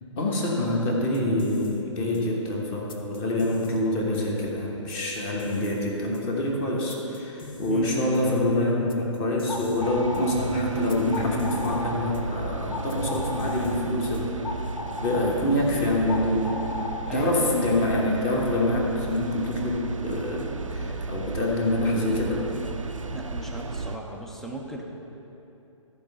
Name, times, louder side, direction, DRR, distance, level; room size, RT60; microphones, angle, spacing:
voice 1, 0.0-14.4 15.0-16.5 17.1-22.5, left 1 dB, 20° left, -1 dB, 1.1 m, -26 dB
sound 1, 1.0-14.5, left 2 dB, 45° left, 0.8 m, -43 dB
voice 2, 7.7-8.0 17.1-17.7 23.1-24.8, right 2 dB, ahead, 0 dB, 0.4 m, -37 dB
sound 2, 9.3-18.1, left 2 dB, 65° left, 1.1 m, -36 dB
sound 3, 9.8-24.0, right 3 dB, 80° right, 0.5 m, -34 dB
13.5 x 4.6 x 5.5 m, 3.0 s
figure-of-eight pair, 130°, 17 cm